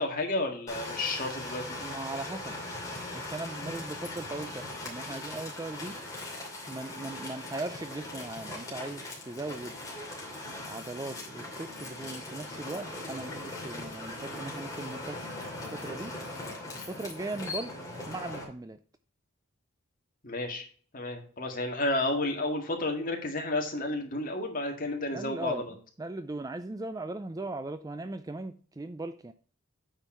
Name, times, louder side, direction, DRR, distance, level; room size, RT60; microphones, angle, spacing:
voice 1, 0.0-1.8 20.2-20.6 20.9-25.7, left 2 dB, 40° left, 2 dB, 1.9 m, -31 dB
sound 1, 0.7-18.4, left 2 dB, 15° left, 2.6 m, -40 dB
voice 2, 1.7-2.6 3.1-6.0 6.7-9.8 10.6-15.2 15.7-16.1 16.9-17.7 18.1-18.8 25.1-25.7 26.0-29.3, right 2 dB, 15° right, 11 dB, 0.3 m, -38 dB
8.9 x 4.5 x 4.4 m, 0.43 s
head